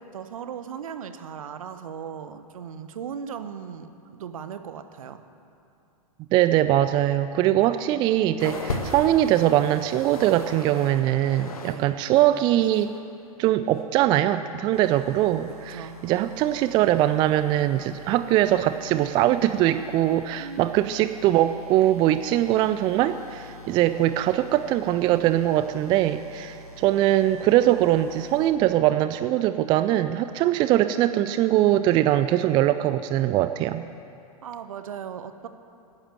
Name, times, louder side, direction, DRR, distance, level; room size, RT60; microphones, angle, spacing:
voice 1, 0.0-5.2 11.5-12.0 15.7-16.0 20.4-20.7 34.4-35.5, right 7 dB, 65° right, 10 dB, 0.8 m, -37 dB
voice 2, 6.3-12.9 13.4-33.9, right 13 dB, 25° right, 12 dB, 0.3 m, -22 dB
sound 1, 8.4-11.8 12.1-13.0 13.7-13.8, left 3 dB, 70° left, 1.3 m, -36 dB
sound 2, 14.7-28.5, left 1 dB, 85° right, 1.3 m, -46 dB
10.5 x 10.0 x 7.5 m, 2.7 s
figure-of-eight pair, 100°, 19 cm